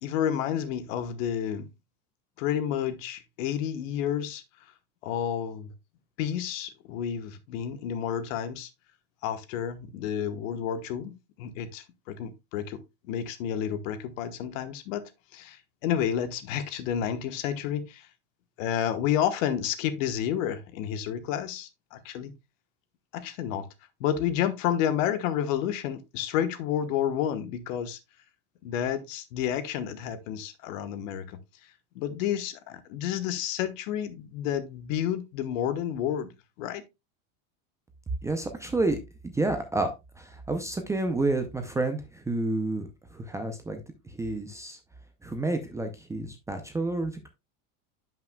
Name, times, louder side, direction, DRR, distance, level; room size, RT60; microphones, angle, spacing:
voice 1, 0.0-1.7 2.4-4.4 5.0-5.7 6.2-8.7 9.2-12.8 13.1-15.0 15.3-18.1 18.6-22.3 23.1-23.7 24.0-28.0 28.6-31.4 31.9-36.3 36.6-36.8, left 9 dB, 65° left, 1.2 m, -30 dB
voice 2, 38.2-43.8 44.1-44.8 45.2-47.3, right 2 dB, 5° right, 0.5 m, -30 dB
10.5 x 5.8 x 2.2 m
supercardioid pair, 150°, 41 cm